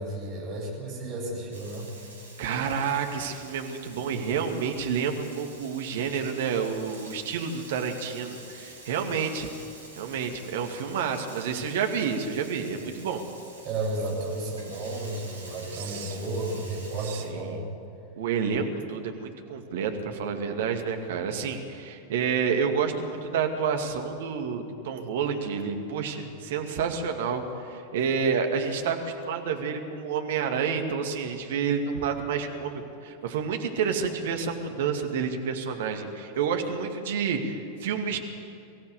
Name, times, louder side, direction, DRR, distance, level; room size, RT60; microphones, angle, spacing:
voice 1, 0.0-1.9 13.6-17.6, right 2 dB, 35° right, -2 dB, 7.6 m, -32 dB
Frying (food), 1.5-17.3, right 2 dB, 75° right, 3.8 m, -48 dB
voice 2, 2.4-9.5 10.0-13.2 15.7-16.2 17.1-17.6 18.2-38.2, right 6 dB, 55° right, 4 dB, 2.1 m, -29 dB
23.5 x 15.5 x 8.1 m, 2.6 s
figure-of-eight pair, 90°, 0 cm